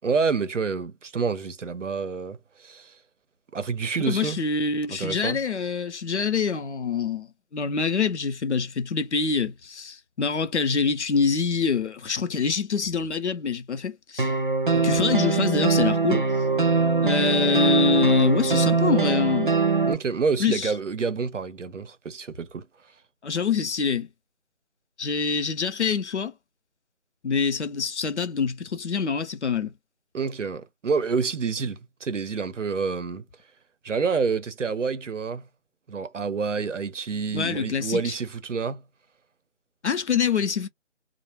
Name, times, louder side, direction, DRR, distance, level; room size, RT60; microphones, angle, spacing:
voice 1, 0.0-3.0 3.5-4.4 5.0-5.4 19.9-22.7 30.1-33.2 33.8-35.5 35.9-38.8, right 5 dB, 75° right, 0.7 m, -28 dB
voice 2, 4.1-14.3 14.7-16.3 17.0-19.9 20.4-20.7 23.2-24.1 25.0-26.3 27.2-29.7 37.3-38.1 39.8-40.7, left 5 dB, 65° left, 0.7 m, -25 dB
sound 1, 14.2-19.9, right 4 dB, 45° right, 0.4 m, -22 dB
2.1 x 2.1 x 3.1 m
figure-of-eight pair, 155°, 37 cm